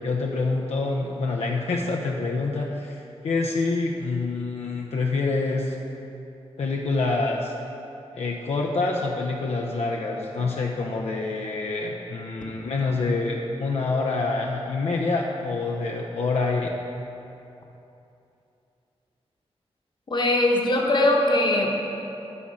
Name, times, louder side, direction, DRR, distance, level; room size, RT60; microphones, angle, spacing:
voice 1, 0.0-5.8 6.6-7.5 8.1-16.7, left 3 dB, 75° left, -1 dB, 0.6 m, -26 dB
voice 2, 20.1-21.7, left 1 dB, 45° left, 0 dB, 1.1 m, -21 dB
9.8 x 4.2 x 6.2 m, 2.9 s
wide cardioid pair, 95°, 11 cm